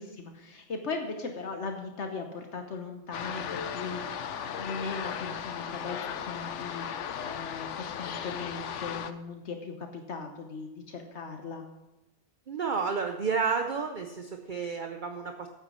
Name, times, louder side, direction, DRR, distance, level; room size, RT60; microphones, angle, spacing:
voice 1, 0.0-11.6, left 4 dB, 75° left, 4 dB, 1.3 m, -38 dB
sound 1, 3.1-9.1, left 8 dB, 90° left, 1.0 m, -36 dB
voice 2, 12.5-15.5, right 5 dB, 50° right, 5 dB, 0.8 m, -31 dB
9.3 x 8.6 x 6.2 m, 1.0 s
omnidirectional pair, 1.2 m